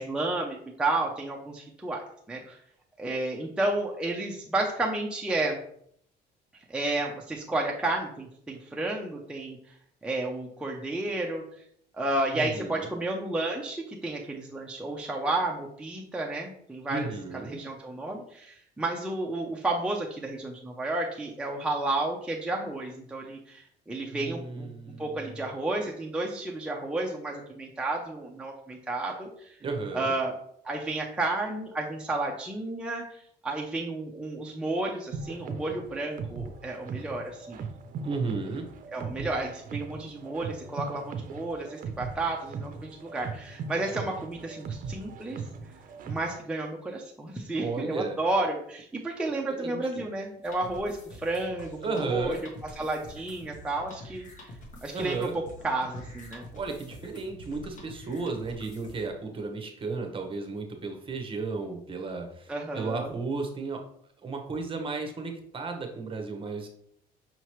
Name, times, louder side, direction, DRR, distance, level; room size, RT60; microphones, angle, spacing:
voice 1, 0.0-2.6 3.0-5.6 6.7-9.6 10.0-11.4 11.9-17.1 17.5-24.7 25.0-29.6 29.9-30.3 30.6-37.6 38.9-45.4 46.0-52.4 52.8-54.5 54.8-55.3 55.6-56.5 62.5-63.1, right 2 dB, 5° right, -1 dB, 0.6 m, -32 dB
voice 2, 12.3-12.9 16.9-17.6 24.1-25.4 29.6-30.1 38.0-38.7 47.6-48.2 49.5-50.0 51.8-52.4 54.9-55.3 56.5-63.8 64.2-66.7, right 4 dB, 30° right, 4 dB, 0.9 m, -34 dB
sound 1, 35.1-46.4, right 5 dB, 55° right, 0.6 m, -39 dB
sound 2, 50.4-59.1, equal, 50° left, 1.1 m, -46 dB
5.7 x 2.9 x 3.0 m, 0.66 s
cardioid pair, 110°, 17 cm